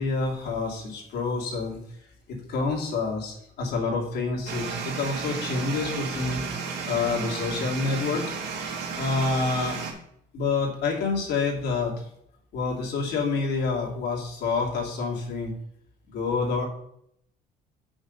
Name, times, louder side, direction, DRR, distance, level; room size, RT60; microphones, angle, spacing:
voice 1, 0.0-1.8 2.3-6.4 6.9-8.2 9.0-9.8 10.3-11.9 12.5-15.5 16.1-16.7, left 4 dB, 70° left, -2 dB, 2.6 m, -27 dB
sound 1, 4.5-9.9, right 5 dB, 80° right, 2.6 m, -33 dB
7.3 x 6.2 x 5.3 m, 0.70 s
cardioid pair, 110°, 17 cm